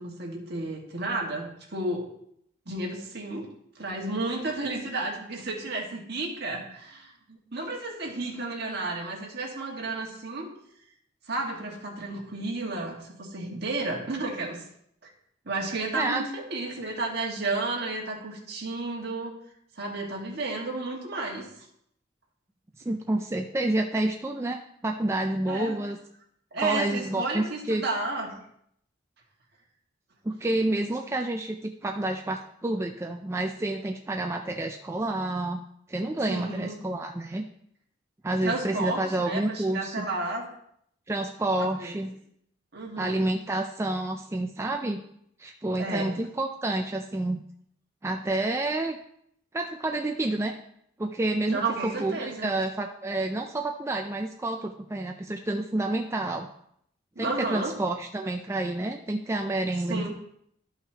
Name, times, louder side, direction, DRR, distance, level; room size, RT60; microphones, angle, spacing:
voice 1, 0.0-2.1 2.7-3.5 3.8-10.5 11.3-14.6 15.0-15.1 15.5-19.3 19.8-21.5 25.5-25.8 26.5-28.3 36.3-36.8 38.4-40.5 41.8-42.0 42.7-43.2 45.8-46.2 51.5-52.5 57.2-57.8 59.9-60.1, right 2 dB, 55° right, -1 dB, 1.7 m, -32 dB
voice 2, 22.8-26.0 26.6-27.8 30.2-35.6 35.9-37.4 38.2-40.0 41.1-42.1 43.0-45.0 45.4-47.4 48.0-49.0 49.5-50.5 51.0-56.5 57.2-60.1, right 2 dB, 15° right, 3 dB, 0.3 m, -29 dB
12.5 x 5.7 x 2.9 m, 0.71 s
head